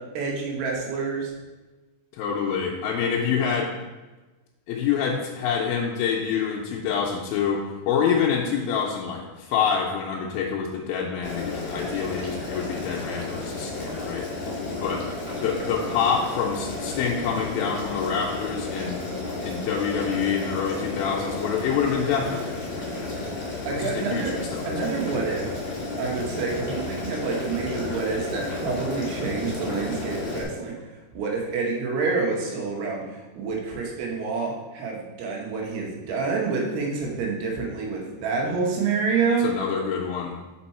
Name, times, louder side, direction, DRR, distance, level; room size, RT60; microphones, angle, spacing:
voice 1, 0.0-1.3 23.7-24.3 24.7-25.5 26.0-30.8 31.1-33.0 33.4-39.5, right 4 dB, 80° right, -1 dB, 3.2 m, -28 dB
voice 2, 2.1-3.7 4.7-14.5 14.8-15.0 15.4-19.0 19.4-22.6 23.8-25.1 39.4-40.3, left 6 dB, 80° left, -2 dB, 2.2 m, -26 dB
Boiling, 11.2-30.4, left 2 dB, 35° left, 2.1 m, -32 dB
5.4 x 5.1 x 4.2 m, 1.2 s
omnidirectional pair, 4.7 m